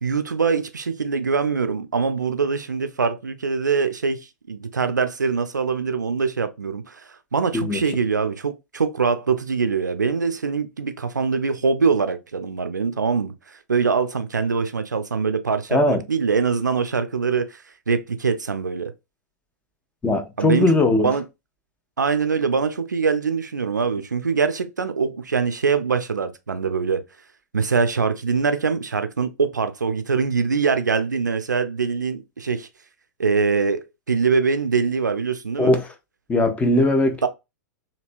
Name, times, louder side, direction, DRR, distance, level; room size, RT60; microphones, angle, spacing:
voice 1, 0.0-18.9 20.4-21.2 22.0-27.0 27.5-32.7 33.2-35.7 37.2-37.3, right 5 dB, 80° right, 0.5 m, -23 dB
voice 2, 15.7-16.0 20.0-21.1 35.6-35.9 36.3-37.2, left 2 dB, 15° left, 0.7 m, -19 dB
3.0 x 2.8 x 2.5 m
figure-of-eight pair, 100°, 10 cm